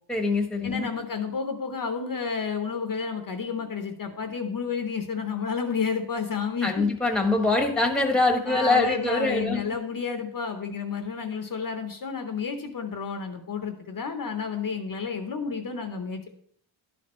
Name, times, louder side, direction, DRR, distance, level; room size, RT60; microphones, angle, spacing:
voice 1, 0.1-0.9 6.6-9.6, left 2 dB, ahead, 3 dB, 1.0 m, -24 dB
voice 2, 0.6-6.9 8.5-16.3, left 5 dB, 45° left, 5 dB, 0.7 m, -31 dB
11.5 x 4.3 x 4.2 m, 0.65 s
wide cardioid pair, 165°, 48 cm